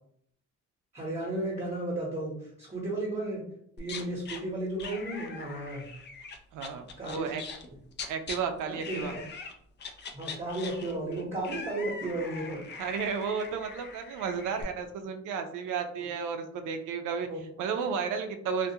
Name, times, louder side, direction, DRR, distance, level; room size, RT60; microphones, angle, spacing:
voice 1, 0.9-3.4 3.8-5.9 7.0-7.3 7.7-7.8 8.7-9.2 10.1-12.6 17.3-17.4, right 2 dB, 25° right, -5 dB, 0.8 m, -34 dB
sound 1, 3.8-4.4 4.8-8.4 8.8-9.5 9.8-14.6, left 5 dB, 35° left, 0.4 m, -42 dB
voice 2, 6.5-7.4 8.1-9.2 12.8-17.3 17.6-18.7, right 6 dB, 85° right, 7 dB, 0.4 m, -33 dB
2.3 x 2.2 x 2.7 m, 0.70 s
cardioid pair, 90°, 30 cm